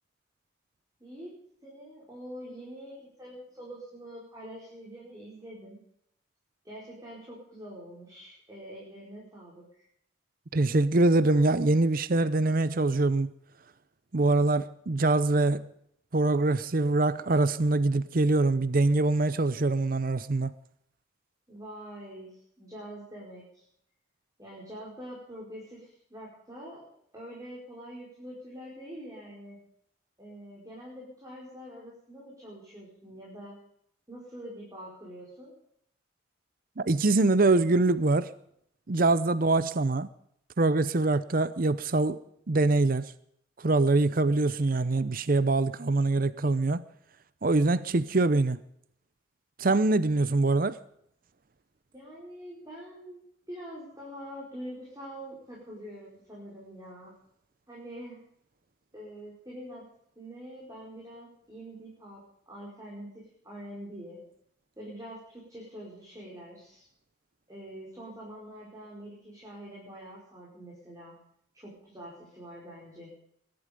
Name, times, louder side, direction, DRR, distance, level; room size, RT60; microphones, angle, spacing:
voice 1, 1.0-1.3 1.6-5.8 6.6-9.8 21.5-23.6 24.4-26.9 27.1-29.6 30.2-33.6 34.1-35.5 51.9-53.2 53.5-57.1 57.7-58.2 58.9-59.8 60.1-62.2 62.5-64.2 64.8-66.9 67.5-71.2 71.5-73.1, equal, 20° right, 5.1 m, -45 dB
voice 2, 10.5-13.3 14.1-15.7 16.1-20.5 36.8-38.3 38.9-40.1 40.6-42.2 42.5-43.1 43.6-46.8 47.4-48.6 49.6-50.8, right 2 dB, 50° right, 0.6 m, -24 dB
22.0 x 12.0 x 5.3 m
head